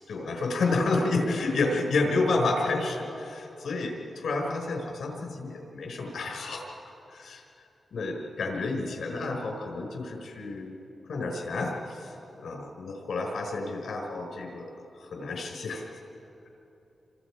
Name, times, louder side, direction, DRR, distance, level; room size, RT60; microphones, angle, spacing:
voice 1, 0.1-6.7 7.1-7.4 7.9-10.8 11.1-15.9, left 3 dB, 80° left, 1 dB, 5.1 m, -30 dB
29.0 x 26.0 x 4.9 m, 2.8 s
wide cardioid pair, 165°, 0 cm